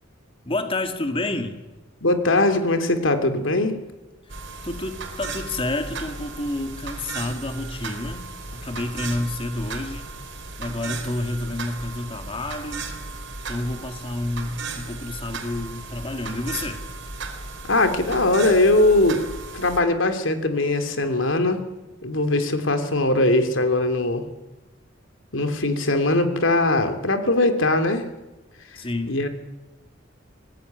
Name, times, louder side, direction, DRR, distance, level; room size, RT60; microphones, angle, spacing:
voice 1, 0.4-1.6 4.6-8.3 8.5-10.1 10.6-12.9 13.5-16.8 28.8-29.2, left 2 dB, 30° left, 6 dB, 2.2 m, -29 dB
voice 2, 2.0-3.8 17.7-19.2 19.5-21.6 22.0-24.2 25.3-28.1 29.1-29.3, left 2 dB, 80° left, 7 dB, 2.9 m, -20 dB
sound 1, 4.3-19.8, right 3 dB, 65° right, 4.2 m, -35 dB
25.5 x 19.0 x 9.4 m, 1.1 s
head